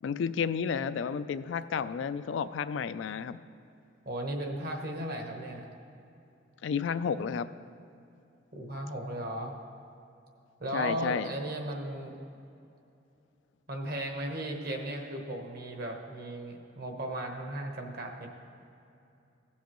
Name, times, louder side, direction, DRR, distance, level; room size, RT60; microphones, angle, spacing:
voice 1, 0.0-3.4 6.6-7.5 10.7-11.3, left 6 dB, 70° left, 13 dB, 0.3 m, -31 dB
voice 2, 4.0-5.7 8.5-9.6 10.6-12.2 13.7-18.3, right 1 dB, 50° right, 2 dB, 1.1 m, -36 dB
16.5 x 7.3 x 3.0 m, 2.7 s
head